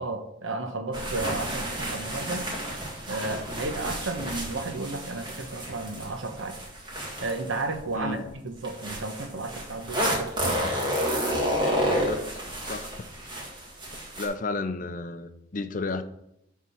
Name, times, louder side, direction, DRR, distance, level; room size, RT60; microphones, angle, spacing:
voice 1, 0.0-2.5 3.1-6.6 7.2-10.8, right 3 dB, 80° right, 6 dB, 1.0 m, -33 dB
sound 1, 0.9-8.0 8.6-14.3, equal, 25° right, 1.8 m, -30 dB
voice 2, 7.9-8.3 11.9-12.3 12.7-12.9 14.2-16.0, left 3 dB, 40° left, 10 dB, 0.5 m, -32 dB
11.0 x 3.7 x 5.7 m, 0.81 s
head